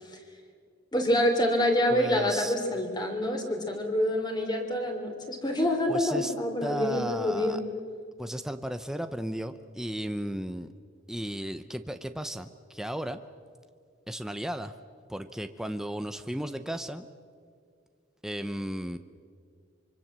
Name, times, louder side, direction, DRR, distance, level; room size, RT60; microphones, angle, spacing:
voice 1, 0.9-7.6, left 1 dB, 25° left, 4 dB, 3.5 m, -27 dB
voice 2, 1.9-2.5 5.9-6.3 6.6-7.6 8.2-10.7 11.1-13.2 14.1-14.7 15.1-17.1 18.2-19.0, equal, 5° right, 9 dB, 0.7 m, -35 dB
25.5 x 25.0 x 7.5 m, 2.1 s
head